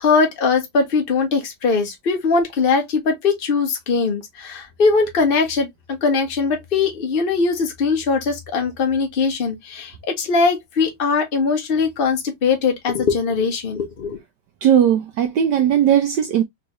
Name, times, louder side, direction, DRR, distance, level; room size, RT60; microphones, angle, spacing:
voice 1, 0.0-14.2, left 4 dB, 70° left, 0.5 m, -20 dB
voice 2, 14.6-16.4, right 9 dB, 80° right, 0.9 m, -17 dB
3.6 x 3.1 x 2.8 m
omnidirectional pair, 2.4 m